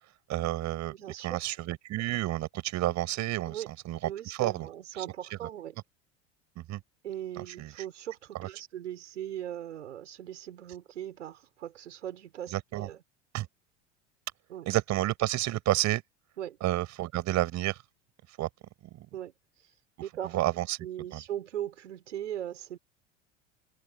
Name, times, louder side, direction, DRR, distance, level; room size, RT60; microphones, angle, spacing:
voice 1, 0.3-0.9 1.2-4.1 4.4-4.7 5.0-5.1 6.6-6.8 7.4-7.7 8.4-8.5 12.5-12.9 13.3-13.5 14.7-16.0 16.6-17.8 18.4-18.5 18.9-19.1 20.3-20.8 21.1-21.2, right 16 dB, 50° right, 5.7 m, -30 dB
voice 2, 0.9-1.4 3.5-3.7 4.0-5.8 7.0-13.0 14.5-14.8 16.4-16.6 19.1-19.3 19.6-19.7 20.0-20.5 20.8-22.8, right 11 dB, 85° right, 5.4 m, -39 dB
hypercardioid pair, 80°, 36 cm